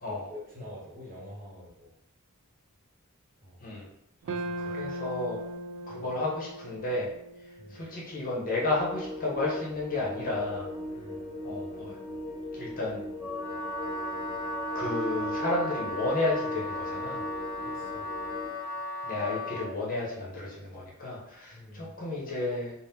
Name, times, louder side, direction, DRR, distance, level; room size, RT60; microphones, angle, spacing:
voice 1, 0.0-1.9 3.4-3.7 4.4-4.9 5.9-6.1 7.6-7.8 10.9-11.2 14.8-14.9 17.6-18.1 21.5-21.9, left 1 dB, 40° right, -5 dB, 1.1 m, -46 dB
sound 1, 4.2-8.6, right 1 dB, 60° right, 0.4 m, -39 dB
voice 2, 4.6-5.4 5.9-7.1 7.7-10.7 11.4-12.0 12.5-13.0 14.7-17.2 19.0-22.7, left 2 dB, 40° left, -4 dB, 0.8 m, -32 dB
sound 2, 8.5-18.5, left 1 dB, 80° left, 0.7 m, -38 dB
Wind instrument woodwind instrument, 13.2-19.7, left 1 dB, 15° right, 0.9 m, -36 dB
2.8 x 2.1 x 3.5 m, 0.79 s
head